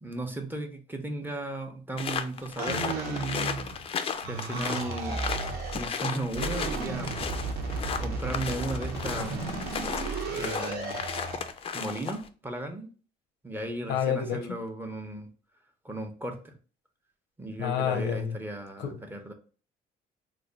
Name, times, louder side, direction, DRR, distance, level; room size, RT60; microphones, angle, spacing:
voice 1, 0.0-3.3 4.3-5.2 5.7-7.1 8.0-9.6 10.3-11.0 11.7-12.9 13.4-15.3 15.8-16.6 17.4-19.3, right 1 dB, 10° right, 0.6 m, -36 dB
sound 1, 2.0-12.3, left 6 dB, 35° left, 0.4 m, -35 dB
sound 2, 2.6-3.9 4.2-5.9 6.3-11.5, right 3 dB, 65° right, 0.8 m, -34 dB
voice 2, 13.9-14.4 17.6-18.4 18.8-19.0, left 8 dB, 90° left, 0.6 m, -28 dB
3.1 x 2.2 x 3.8 m
cardioid pair, 110°, 17 cm